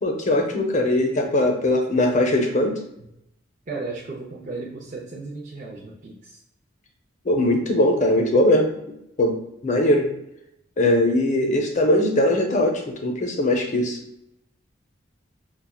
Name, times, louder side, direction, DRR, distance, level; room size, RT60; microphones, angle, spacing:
voice 1, 0.0-2.8 7.2-8.7 9.2-9.3 9.6-10.1 10.8-14.0, left 1 dB, 40° left, 3 dB, 0.6 m, -20 dB
voice 2, 3.7-6.4, right 3 dB, 40° right, -4 dB, 0.5 m, -35 dB
5.5 x 2.3 x 2.3 m, 0.81 s
head